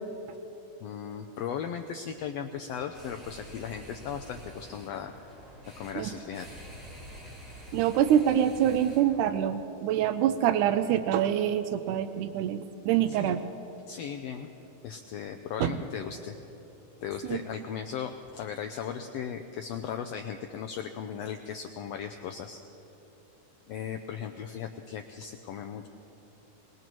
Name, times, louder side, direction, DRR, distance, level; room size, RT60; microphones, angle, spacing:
voice 1, 0.8-5.1 5.8-6.5 13.1-13.4 13.9-14.5 14.8-16.4 17.0-22.6 23.7-25.9, left 8 dB, 90° left, 5 dB, 1.4 m, -37 dB
sound 1, 2.8-9.3, equal, 55° right, 4.7 m, -47 dB
voice 2, 7.7-13.5 15.6-15.7 17.3-17.4, right 10 dB, 90° right, 11 dB, 2.1 m, -25 dB
22.5 x 20.5 x 3.1 m, 2.9 s
omnidirectional pair, 3.5 m